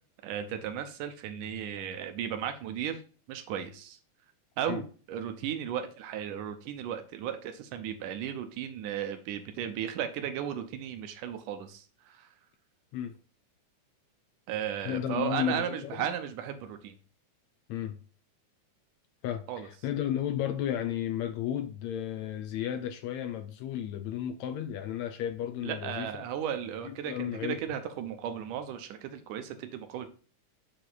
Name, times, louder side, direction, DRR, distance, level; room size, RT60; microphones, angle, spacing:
voice 1, 0.2-3.0 3.3-4.0 4.6-12.3 14.5-17.0 19.5-19.7 25.6-30.1, right 9 dB, 80° right, 2.3 m, -35 dB
voice 2, 14.8-16.1 17.7-18.0 19.2-26.1 26.8-27.6, left 10 dB, 75° left, 1.7 m, -33 dB
7.9 x 4.8 x 4.0 m
omnidirectional pair, 3.6 m